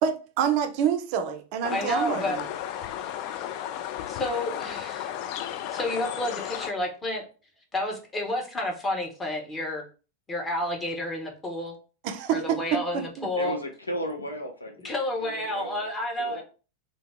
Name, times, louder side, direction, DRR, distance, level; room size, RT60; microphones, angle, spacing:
voice 1, 0.0-2.5 12.0-13.3, right 8 dB, 45° right, 0.4 m, -27 dB
sound 1, 1.6-6.7, left 11 dB, 45° left, 0.3 m, -34 dB
voice 2, 1.7-2.4 4.1-5.2 5.7-7.2 7.7-9.8 10.3-11.7 12.3-13.6 14.8-16.4, left 1 dB, 15° left, 1.1 m, -30 dB
voice 3, 13.3-15.0 15.2-16.4, equal, 80° left, 0.7 m, -35 dB
2.8 x 2.8 x 3.2 m
figure-of-eight pair, 90°, 0 cm